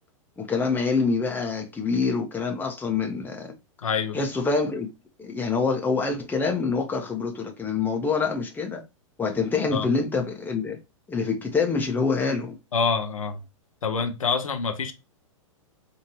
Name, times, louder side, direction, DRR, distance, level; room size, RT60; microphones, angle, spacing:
voice 1, 0.4-3.5 4.1-4.9 5.2-8.8 9.2-10.8 11.1-12.6, left 4 dB, 10° left, 0.9 m, -26 dB
voice 2, 3.8-4.2 9.7-9.9 12.7-13.4 13.8-14.9, left 5 dB, 80° left, 0.7 m, -26 dB
4.3 x 2.8 x 3.0 m
figure-of-eight pair, 105°, 17 cm